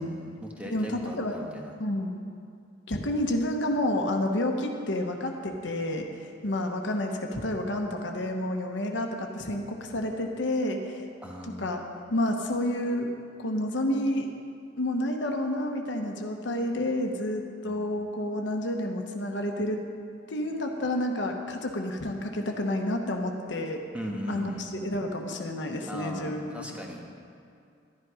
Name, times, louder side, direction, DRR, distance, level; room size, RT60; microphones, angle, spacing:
voice 1, 0.0-1.7 11.2-11.7 17.6-17.8 23.9-24.9 25.9-27.0, equal, 5° right, -1 dB, 1.2 m, -38 dB
voice 2, 0.6-1.4 1.8-2.2 2.9-11.0 11.6-11.8 12.1-13.1 13.4-14.3 14.8-19.8 20.3-23.8 24.3-24.5 24.8-26.8, left 1 dB, 70° left, 3 dB, 1.1 m, -29 dB
12.0 x 11.0 x 4.9 m, 2.4 s
head